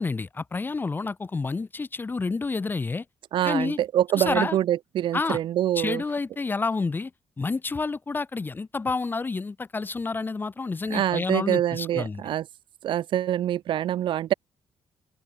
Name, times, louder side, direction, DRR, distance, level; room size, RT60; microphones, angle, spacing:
voice 1, 0.0-3.1 3.4-3.8 4.2-4.6 5.1-5.4 5.8-7.1 7.4-12.2, left 4 dB, 20° left, 2.0 m, -29 dB
voice 2, 3.3-6.0 10.9-12.5 12.8-14.3, right 11 dB, 65° right, 0.5 m, -25 dB
open air
cardioid pair, 145°, 9 cm